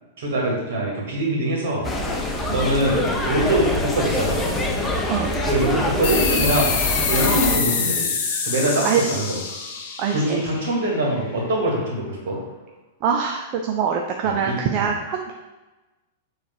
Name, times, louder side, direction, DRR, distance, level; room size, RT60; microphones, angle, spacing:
voice 1, 0.2-1.9 2.5-4.5 5.4-6.7 7.1-8.1 8.4-9.4 10.1-12.4 14.2-14.9, right 1 dB, 60° right, -2 dB, 2.1 m, -23 dB
sound 1, 1.8-7.6, left 1 dB, 10° left, 0.9 m, -25 dB
sound 2, 6.0-11.2, left 5 dB, 50° left, 1.0 m, -25 dB
voice 2, 8.8-9.2 10.0-10.4 13.0-15.3, right 7 dB, 40° right, 3 dB, 0.5 m, -24 dB
6.9 x 3.3 x 4.6 m, 1.1 s
figure-of-eight pair, 100°, 0 cm